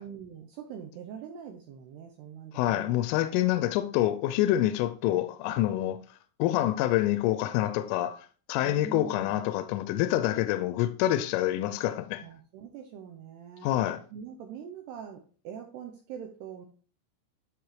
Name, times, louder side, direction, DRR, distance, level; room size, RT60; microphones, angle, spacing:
voice 1, 0.0-3.0 8.6-9.4 12.2-13.7 14.1-16.7, right 8 dB, 80° right, 2.4 m, -43 dB
voice 2, 2.6-6.0 6.4-8.2 8.5-12.2 13.6-14.0, left 14 dB, 85° left, 3.1 m, -27 dB
12.0 x 6.1 x 3.2 m
omnidirectional pair, 5.6 m